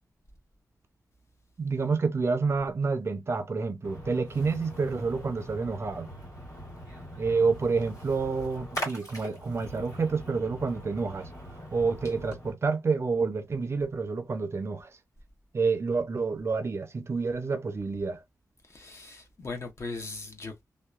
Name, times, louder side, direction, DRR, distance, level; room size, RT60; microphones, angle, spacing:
voice 1, 1.6-6.1 7.2-11.3 11.7-15.0 15.5-18.2, right 4 dB, 45° right, 0.5 m, -28 dB
Splash splatter, 3.8-12.5, equal, 70° left, 1.7 m, -42 dB
voice 2, 18.7-20.6, left 3 dB, 45° left, 0.9 m, -39 dB
2.8 x 2.0 x 2.3 m
wide cardioid pair, 100°, 6 cm